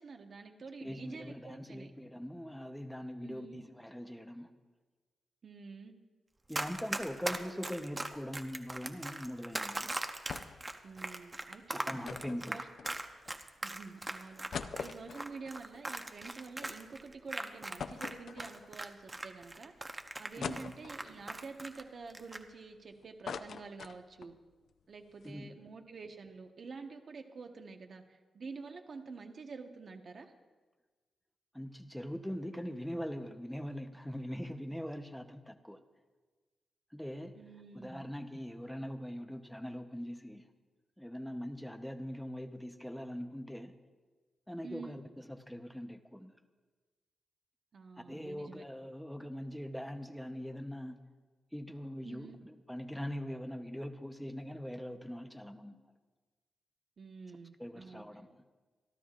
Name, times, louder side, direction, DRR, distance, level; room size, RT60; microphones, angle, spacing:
voice 1, 0.0-1.9 3.2-3.6 5.4-5.9 10.8-11.9 12.3-12.7 13.6-24.4 24.9-30.3 37.4-38.1 44.6-45.0 47.7-48.6 52.0-52.4 57.0-58.0, right 4 dB, 50° right, 4 dB, 1.2 m, -48 dB
voice 2, 0.8-4.5 6.5-10.0 11.7-12.6 20.4-20.6 25.2-25.6 31.5-35.8 36.9-37.4 37.7-40.4 41.0-43.7 44.5-46.4 48.1-51.0 51.5-55.9 57.6-58.4, equal, ahead, 6 dB, 0.9 m, -42 dB
Run, 6.5-18.1 18.4-21.8 22.1-22.4, right 2 dB, 20° right, 0.8 m, -39 dB
sound 1, 10.3-10.7 11.0-11.1 12.0-13.3 13.8-13.9 14.3-16.7 17.1-17.2 17.8-18.9 19.4-19.5 20.4-21.2 21.8-22.8 23.0-24.4 24.7-24.8 25.1-25.3, left 6 dB, 70° left, 0.6 m, -43 dB
27.0 x 12.0 x 2.5 m, 1.3 s
wide cardioid pair, 130°, 0 cm